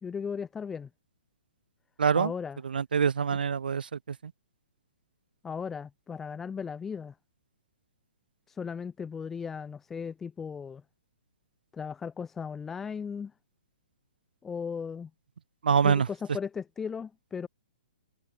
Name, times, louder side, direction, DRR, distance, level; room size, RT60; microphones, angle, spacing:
voice 1, 0.0-0.9 2.2-2.6 5.4-7.2 8.5-10.8 11.7-13.3 14.4-15.1 15.8-17.5, left 6 dB, 5° left, 0.5 m, -36 dB
voice 2, 2.0-2.3 2.6-4.2 15.6-16.1, right 6 dB, 80° right, 1.1 m, -25 dB
hypercardioid pair, 180°, 5 cm